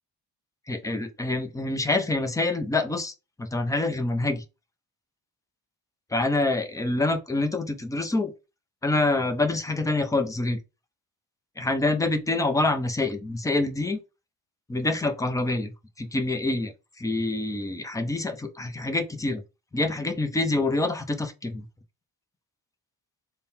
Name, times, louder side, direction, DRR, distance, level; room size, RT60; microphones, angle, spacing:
voice 1, 0.7-4.4 6.1-8.3 8.8-10.6 11.6-14.0 14.7-15.7 16.0-19.4 19.7-21.6, left 2 dB, 10° left, 0.5 m, -26 dB
3.6 x 2.2 x 4.1 m
cardioid pair, 120°, 41 cm